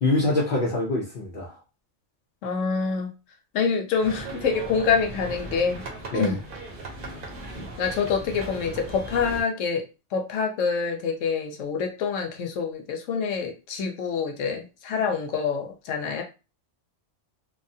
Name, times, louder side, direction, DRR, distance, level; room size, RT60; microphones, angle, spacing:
voice 1, 0.0-1.6 6.1-6.4, left 2 dB, 50° left, -3 dB, 0.7 m, -25 dB
voice 2, 2.4-3.1 3.5-5.8 6.1-6.4 7.8-9.8 10.1-16.2, left 5 dB, 85° left, 4 dB, 1.0 m, -26 dB
sound 1, 4.0-9.4, right 2 dB, 50° right, 0.9 m, -38 dB
3.3 x 2.1 x 2.7 m, 0.30 s
omnidirectional pair, 1.3 m